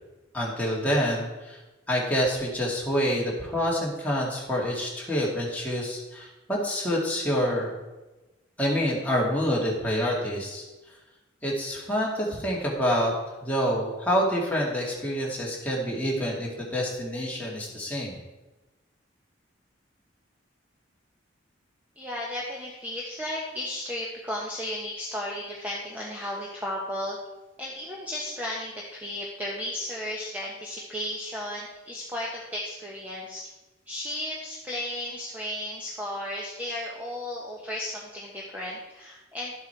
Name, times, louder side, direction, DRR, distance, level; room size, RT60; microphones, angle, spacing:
voice 1, 0.3-1.6 1.9-7.8 8.6-10.6 11.4-13.1 13.4-18.2, equal, 10° left, -4 dB, 2.2 m, -27 dB
voice 2, 22.0-27.2 27.6-33.5 33.9-39.5, left 1 dB, 10° right, -3 dB, 1.1 m, -34 dB
12.0 x 8.0 x 4.6 m, 1.1 s
head